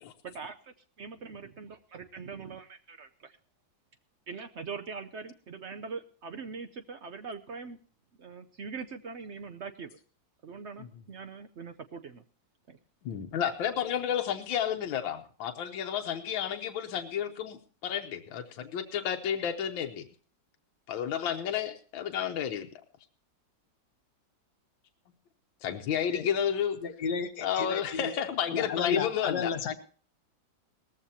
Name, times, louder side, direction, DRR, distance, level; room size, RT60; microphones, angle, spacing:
voice 1, 0.2-3.4 4.3-7.8 8.2-10.0 10.4-12.2 12.7-12.8, right 5 dB, 65° right, 0.7 m, -42 dB
voice 2, 13.0-20.1 20.9-22.7 25.6-26.8 27.4-29.7, left 9 dB, 85° left, 1.6 m, -31 dB
voice 3, 26.8-28.1 28.5-29.7, left 6 dB, 60° left, 1.5 m, -32 dB
19.0 x 14.5 x 2.8 m
omnidirectional pair, 2.1 m